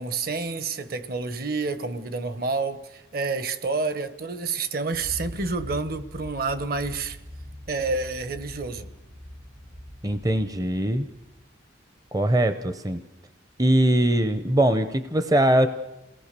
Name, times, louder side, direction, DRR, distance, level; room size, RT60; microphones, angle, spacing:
voice 1, 0.0-7.2 7.7-8.9, right 3 dB, 50° right, 1.2 m, -29 dB
sound 1, 4.9-11.4, equal, 75° right, 6.7 m, -42 dB
voice 2, 10.0-11.1 12.1-13.0 13.6-15.7, right 1 dB, 20° right, 0.7 m, -21 dB
28.0 x 18.0 x 6.8 m
head